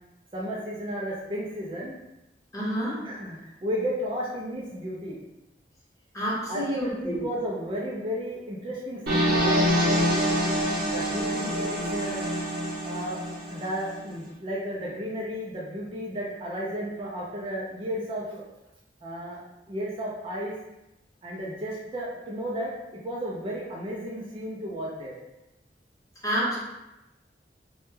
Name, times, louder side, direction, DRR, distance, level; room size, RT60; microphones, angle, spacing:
voice 1, 0.3-1.9 3.0-5.2 6.5-10.0 10.9-12.2 12.8-13.2 13.5-18.4 19.0-20.5 21.2-25.1, equal, 30° right, -5 dB, 0.3 m, -33 dB
voice 2, 2.5-3.0 6.1-7.2 26.2-26.5, equal, 20° left, -8 dB, 0.7 m, -28 dB
sound 1, 9.1-14.0, equal, 60° right, 0.7 m, -26 dB
2.1 x 2.1 x 3.0 m, 0.96 s
head